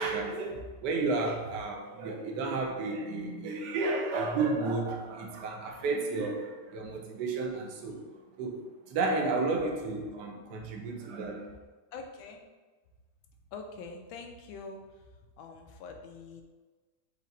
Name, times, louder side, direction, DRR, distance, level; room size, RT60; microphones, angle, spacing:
voice 1, 0.0-8.1 8.4-8.6 8.9-11.5, right 3 dB, 70° right, 2 dB, 1.2 m, -32 dB
voice 2, 11.9-12.4 13.5-14.8 15.4-16.4, left 4 dB, 85° left, 4 dB, 1.4 m, -44 dB
5.2 x 2.5 x 4.1 m, 1.3 s
omnidirectional pair, 2.1 m